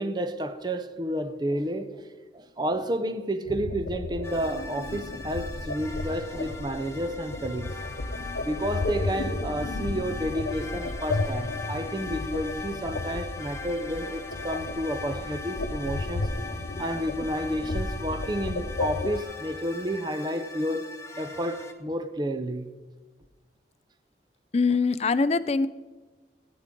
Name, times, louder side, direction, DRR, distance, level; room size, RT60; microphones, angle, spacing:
voice 1, 0.0-2.0 2.3-7.7 8.4-16.3 16.8-20.9 21.2-22.7, equal, 25° right, 0.6 m, -31 dB
sound 1, 3.5-19.2, left 2 dB, 85° left, 0.7 m, -33 dB
sound 2, 4.2-21.7, left 4 dB, 15° left, 0.9 m, -41 dB
voice 2, 24.5-25.7, left 4 dB, 35° left, 0.4 m, -24 dB
16.0 x 9.5 x 3.8 m
head